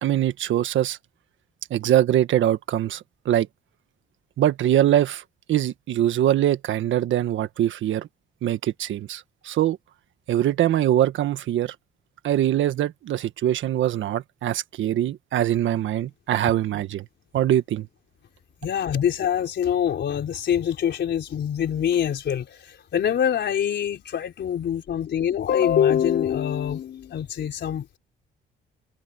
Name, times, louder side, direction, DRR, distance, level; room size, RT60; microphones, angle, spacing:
voice 1, 0.0-1.0 1.7-3.5 4.4-5.2 5.5-8.1 8.4-9.8 10.3-11.7 12.2-17.0 17.3-17.9, right 12 dB, 75° right, 1.5 m, -23 dB
voice 2, 18.6-28.0, left 9 dB, 65° left, 4.2 m, -24 dB
cardioid pair, 90°, 20 cm